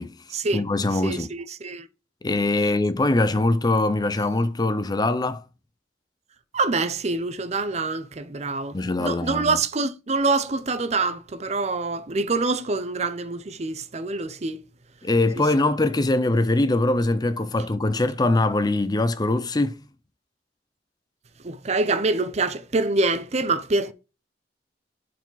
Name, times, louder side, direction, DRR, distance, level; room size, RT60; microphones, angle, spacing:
voice 1, 0.5-1.3 2.2-5.4 8.7-9.6 15.0-19.8, left 2 dB, 25° left, 0.6 m, -22 dB
voice 2, 1.0-1.9 6.5-14.6 21.4-23.9, right 3 dB, 40° right, 0.6 m, -25 dB
10.5 x 4.8 x 4.0 m
head